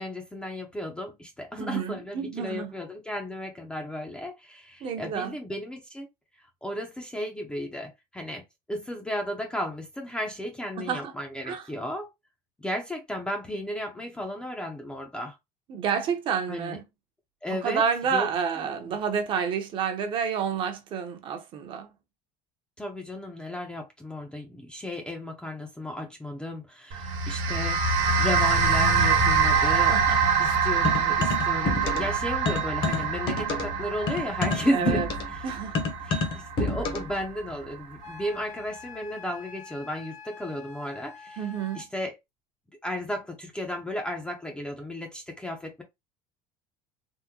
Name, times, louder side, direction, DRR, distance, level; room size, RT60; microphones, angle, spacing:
voice 1, 0.0-6.1 6.6-8.4 8.7-12.1 12.6-15.4 16.5-16.8 17.4-17.8 18.1-18.3 18.8-18.9 22.8-27.9 28.2-30.0 30.4-35.0 35.3-35.4 36.0-41.4 41.8-42.1 42.8-45.8, left 1 dB, 5° left, 0.4 m, -34 dB
voice 2, 1.6-2.7 4.8-5.4 10.8-11.1 11.4-11.7 15.7-16.8 17.5-21.9 29.9-30.2 34.7-35.1 35.4-35.8 41.4-41.8, right 7 dB, 35° right, 0.6 m, -29 dB
sound 1, 26.9-37.5, right 5 dB, 70° right, 1.1 m, -25 dB
sound 2, 30.8-32.2 32.4-37.2, left 3 dB, 35° left, 0.7 m, -29 dB
Wind instrument woodwind instrument, 38.0-41.9, left 5 dB, 75° left, 1.6 m, -45 dB
3.6 x 2.1 x 2.8 m
cardioid pair, 170°, 14 cm